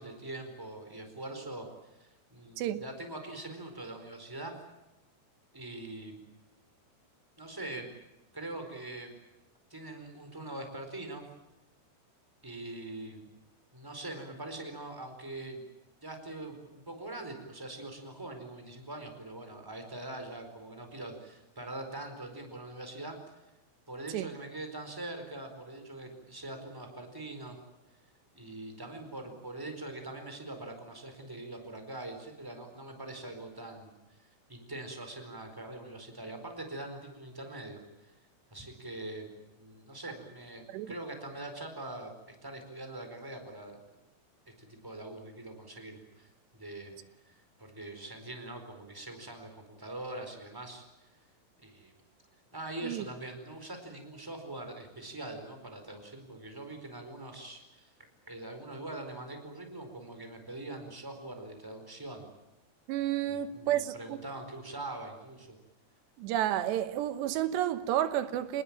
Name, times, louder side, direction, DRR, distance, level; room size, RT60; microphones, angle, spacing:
voice 1, 0.0-1.7 1.9-4.5 5.5-6.2 7.4-7.9 8.3-9.2 9.7-11.2 12.4-13.3 13.7-15.6 16.0-23.2 23.9-27.6 28.3-33.9 34.2-38.1 38.5-39.3 39.6-43.8 44.6-46.9 47.2-47.3 47.6-50.8 51.6-51.9 52.5-57.9 58.2-62.3 63.3-65.6, right 2 dB, 5° right, 4.2 m, -43 dB
voice 2, 62.9-64.2 66.2-68.6, right 12 dB, 85° right, 3.2 m, -31 dB
27.0 x 20.0 x 9.0 m
omnidirectional pair, 4.8 m